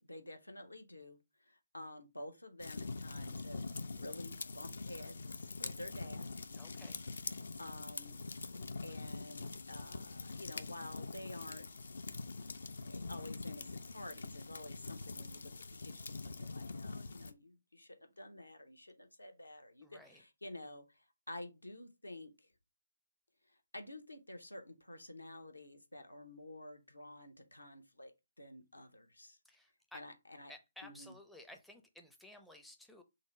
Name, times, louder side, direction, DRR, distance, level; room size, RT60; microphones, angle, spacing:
voice 1, 0.0-3.6 3.9-6.3 7.6-8.2 8.8-9.4 9.7-11.7 12.8-22.5 23.5-28.1 28.4-29.4 29.9-30.5 30.8-31.2, left 1 dB, 85° left, 0.8 m, -50 dB
sound 1, 2.6-17.3, left 3 dB, 60° left, 0.4 m, -44 dB
voice 2, 6.5-7.0 19.8-20.2 29.5-30.0 30.5-33.0, left 1 dB, ahead, 0.4 m, -55 dB
3.8 x 2.0 x 4.3 m
figure-of-eight pair, 140°, 0 cm